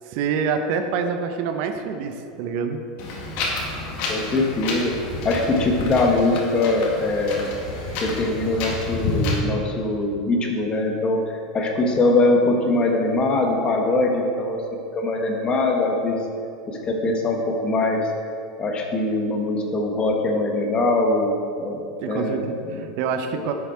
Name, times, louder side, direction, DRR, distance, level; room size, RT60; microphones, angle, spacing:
voice 1, 0.1-2.8 22.0-23.5, right 6 dB, 55° right, 7 dB, 0.7 m, -26 dB
Wind, 3.0-9.4, left 3 dB, 55° left, 1.9 m, -29 dB
voice 2, 4.0-5.0 5.2-7.5 8.0-14.6 14.9-16.3 16.7-18.1 18.6-21.8 22.1-22.8 23.4-23.5, left 2 dB, 30° left, 2 dB, 1.4 m, -22 dB
10.5 x 5.9 x 4.4 m, 2.6 s
supercardioid pair, 120°, 3 cm